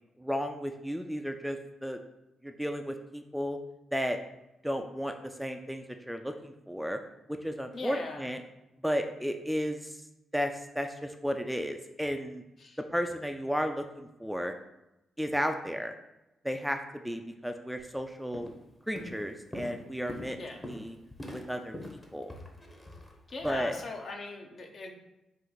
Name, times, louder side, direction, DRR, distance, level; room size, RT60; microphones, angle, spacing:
voice 1, 0.2-2.0 2.4-3.6 3.9-4.2 4.6-5.1 5.4-7.0 7.4-8.4 8.8-10.0 10.3-10.5 10.8-12.4 12.9-14.5 15.2-15.9 16.4-16.8 17.0-18.5 18.9-20.4 20.6-21.0 21.3-22.3 23.4-23.8, equal, ahead, 6 dB, 0.3 m, -33 dB
voice 2, 7.7-8.3 12.6-12.8 20.4-20.6 23.3-24.9, left 3 dB, 55° left, 3 dB, 0.7 m, -40 dB
Walk footsteps, 17.8-18.0 18.3-18.7 19.0-23.6, left 1 dB, 20° left, 0.8 m, -44 dB
4.3 x 2.5 x 3.9 m, 0.93 s
cardioid pair, 65°, 0 cm